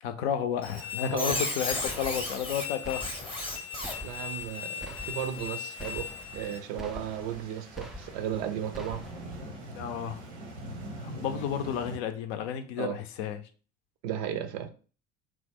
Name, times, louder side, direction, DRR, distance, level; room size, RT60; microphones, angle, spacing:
voice 1, 0.0-3.1 9.7-10.2 11.0-13.4, left 9 dB, 60° left, 0.5 m, -32 dB
Squeak, 0.6-6.6, left 4 dB, 15° left, 0.7 m, -35 dB
voice 2, 1.0-1.4 4.0-9.0 11.3-11.4 12.8-13.0 14.0-14.7, right 10 dB, 60° right, 0.5 m, -35 dB
sound 1, 1.7-12.0, right 1 dB, 80° right, 0.9 m, -45 dB
sound 2, 1.9-2.5 2.8-3.5 3.8-4.5 4.8-5.5 5.8-6.5 6.8-7.5 7.8-8.4 8.7-9.4, equal, ahead, 0.3 m, -45 dB
2.9 x 2.0 x 3.7 m
figure-of-eight pair, 60°, 34 cm